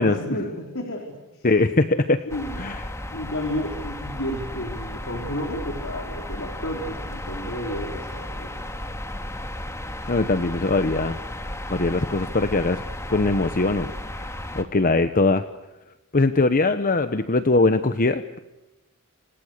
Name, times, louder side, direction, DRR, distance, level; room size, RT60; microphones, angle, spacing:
voice 1, 0.0-1.5 2.3-2.7 3.1-8.6, equal, 65° left, 2 dB, 4.4 m, -32 dB
voice 2, 1.4-2.2 2.6-2.9 10.1-11.2 11.7-12.8 13.1-15.5 16.1-18.4, left 3 dB, 40° left, 10 dB, 1.0 m, -21 dB
sound 1, 2.3-14.6, left 1 dB, 15° left, 2.2 m, -34 dB
29.5 x 27.5 x 6.7 m, 1.0 s
head